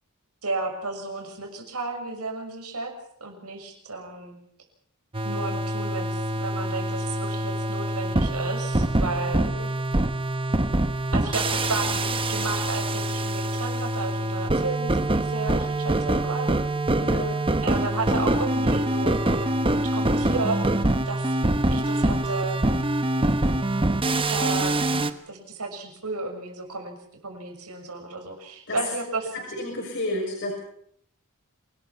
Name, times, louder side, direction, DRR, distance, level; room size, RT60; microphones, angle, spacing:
voice 1, 0.4-2.9 3.2-4.4 5.2-9.5 11.1-16.6 17.6-19.5 19.8-20.6 21.0-21.4 21.7-22.6 24.3-27.0 27.2-29.3, right 3 dB, 90° right, 3 dB, 6.6 m, -33 dB
sound 1, 5.1-25.1, right 1 dB, 25° right, 1.1 m, -25 dB
voice 2, 17.0-17.4 28.7-28.8 29.3-30.5, left 1 dB, 55° left, -1 dB, 6.5 m, -31 dB
27.5 x 20.0 x 5.9 m, 0.66 s
head